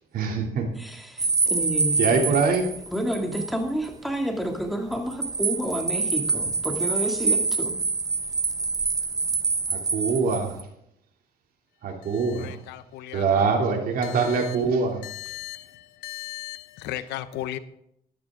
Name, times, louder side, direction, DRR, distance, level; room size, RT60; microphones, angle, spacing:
voice 1, 0.1-0.6 2.0-2.7 9.7-10.6 11.8-12.5 13.1-15.0, right 5 dB, 60° right, 2.8 m, -23 dB
voice 2, 0.8-2.3 2.9-7.7, equal, ahead, 2.5 m, -30 dB
sound 1, 1.2-3.5 3.8-3.9 4.9-10.6, right 4 dB, 20° right, 0.9 m, -26 dB
voice 3, 12.4-13.5 14.0-14.1 15.0-15.6 16.0-17.6, left 14 dB, 85° left, 0.8 m, -36 dB
14.0 x 12.0 x 3.7 m
cardioid pair, 110°, 17 cm